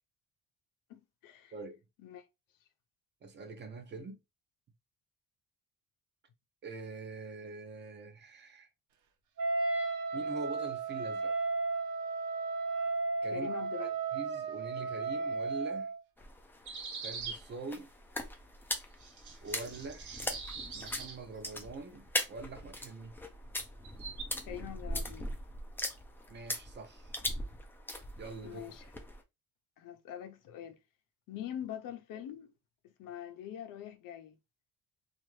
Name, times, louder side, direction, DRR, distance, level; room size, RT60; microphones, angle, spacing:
voice 1, 0.9-1.5 2.0-2.2 13.3-13.9 24.5-25.3 28.4-28.8 29.8-30.8 31.3-32.5 32.8-34.4, left 10 dB, 80° left, 0.7 m, -44 dB
voice 2, 3.2-4.2 6.6-8.7 10.1-11.3 13.2-15.9 17.0-17.9 19.4-20.3 20.7-23.1 26.3-27.1 28.2-28.7, right 3 dB, 35° right, 0.6 m, -44 dB
Wind instrument woodwind instrument, 9.4-16.0, right 3 dB, 80° right, 0.8 m, -34 dB
sound 1, 16.2-29.2, left 1 dB, 5° left, 0.4 m, -40 dB
sound 2, 16.7-17.4 18.7-18.8 19.0-21.2 23.8-24.3, right 5 dB, 60° right, 1.0 m, -43 dB
2.8 x 2.5 x 3.1 m
cardioid pair, 155°, 33 cm